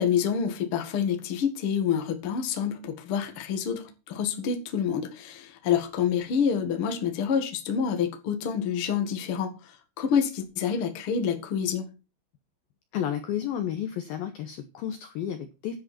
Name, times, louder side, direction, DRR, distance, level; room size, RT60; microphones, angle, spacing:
voice 1, 0.0-11.9, left 7 dB, 55° left, 1.5 m, -27 dB
voice 2, 12.9-15.8, left 10 dB, 75° left, 2.2 m, -32 dB
10.5 x 10.5 x 4.4 m
omnidirectional pair, 5.5 m